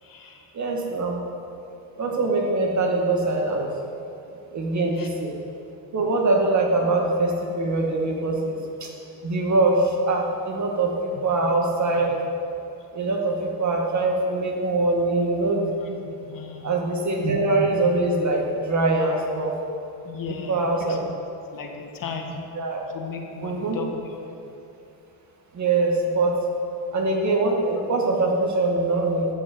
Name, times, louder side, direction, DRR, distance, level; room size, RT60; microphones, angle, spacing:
voice 1, 0.0-0.5 4.9-5.1 11.2-11.5 16.0-16.8 20.0-21.0 21.5-22.4 22.9-24.2, left 5 dB, 45° left, 3 dB, 1.6 m, -36 dB
voice 2, 0.5-1.2 2.0-3.7 4.5-5.3 5.9-8.9 9.2-12.2 12.9-16.0 16.6-19.5 20.3-21.0 22.5-22.8 23.4-23.8 25.5-26.3 26.9-29.3, right 2 dB, 40° right, 0 dB, 2.2 m, -23 dB
13.5 x 6.3 x 7.7 m, 2.7 s
cardioid pair, 95°, 44 cm